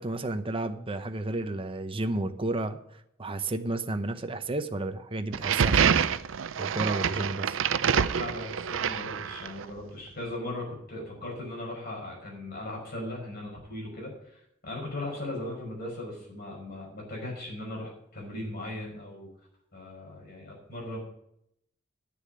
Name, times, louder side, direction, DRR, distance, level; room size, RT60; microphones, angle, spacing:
voice 1, 0.0-2.8 3.2-6.0 6.6-7.6, right 2 dB, 30° right, 8 dB, 0.8 m, -32 dB
sound 1, 5.3-9.6, right 7 dB, 85° right, 0.5 m, -26 dB
voice 2, 8.1-19.3 19.7-21.0, left 1 dB, 55° left, -2 dB, 5.6 m, -38 dB
9.5 x 7.0 x 9.0 m, 0.76 s
head